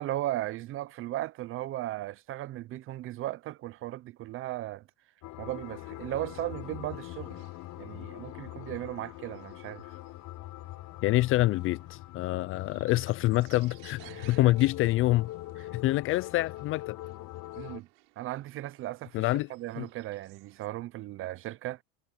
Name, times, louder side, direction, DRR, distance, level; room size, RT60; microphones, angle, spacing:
voice 1, 0.0-4.8 5.4-7.5 7.8-9.9 14.0-14.5 17.6-17.9 18.2-19.2 19.5-21.8, right 15 dB, 35° right, 0.5 m, -36 dB
sound 1, 5.2-17.8, left 17 dB, 50° left, 5.1 m, -43 dB
sound 2, 6.6-20.7, right 26 dB, 75° right, 7.6 m, -61 dB
voice 2, 11.0-15.3 15.6-17.0 19.1-19.5 19.8-19.9, left 17 dB, 35° left, 0.4 m, -26 dB
supercardioid pair, 130°, 40 cm